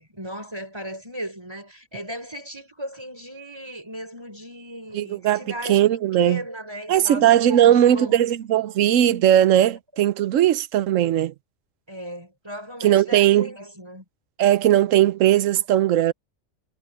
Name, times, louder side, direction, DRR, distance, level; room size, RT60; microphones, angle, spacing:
voice 1, 0.0-8.2 11.9-14.0, right 1 dB, 20° right, 5.2 m, -36 dB
voice 2, 4.9-5.4 5.7-6.4 6.9-11.3 12.8-13.5 14.4-16.1, right 11 dB, 85° right, 1.1 m, -18 dB
omnidirectional pair, 1.3 m